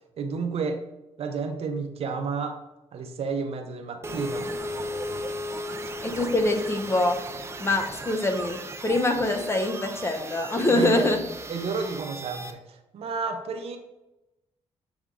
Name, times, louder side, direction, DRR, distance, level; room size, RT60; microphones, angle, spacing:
voice 1, 0.2-0.8 1.2-2.6 2.9-4.5 5.8-5.9 10.7-11.1 11.5-13.8, right 5 dB, 60° right, 5 dB, 0.8 m, -31 dB
sound 1, 4.0-12.5, equal, 20° right, 0.6 m, -36 dB
voice 2, 6.0-7.2 7.6-11.2, left 2 dB, 20° left, 5 dB, 0.8 m, -24 dB
7.1 x 3.6 x 3.7 m, 0.96 s
cardioid pair, 110°, 12 cm